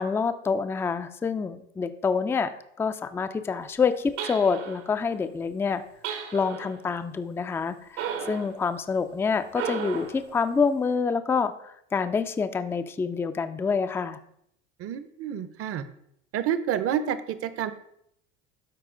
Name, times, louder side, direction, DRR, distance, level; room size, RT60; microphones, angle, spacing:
voice 1, 0.0-2.5 2.8-5.8 6.3-14.2, left 5 dB, 5° left, 10 dB, 0.3 m, -27 dB
sound 1, 4.2-4.9 6.0-6.8 8.0-8.5 9.5-10.2, right 8 dB, 75° right, 1.4 m, -34 dB
voice 2, 14.8-15.8 16.3-17.7, right 9 dB, 40° right, 13 dB, 0.7 m, -29 dB
12.0 x 4.2 x 3.8 m, 0.73 s
supercardioid pair, 100°, 34 cm